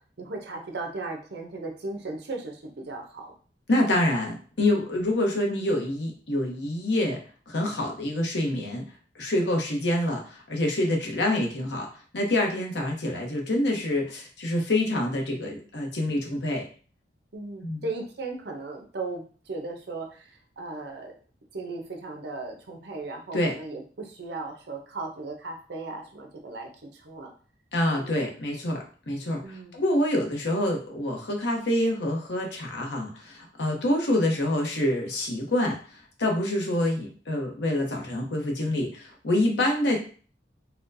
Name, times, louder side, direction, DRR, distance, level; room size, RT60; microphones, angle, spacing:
voice 1, 0.2-3.3 4.9-5.1 9.4-9.5 17.3-21.1 21.5-27.3 27.9-28.3 29.4-29.8 39.5-39.6, right 3 dB, 65° right, 2 dB, 0.7 m, -37 dB
voice 2, 3.7-7.2 7.5-8.8 9.1-11.9 12.1-16.7 17.6-17.8 23.3-23.5 27.7-40.0, left 1 dB, 75° left, 1 dB, 0.9 m, -26 dB
4.2 x 2.2 x 2.6 m, 0.41 s
head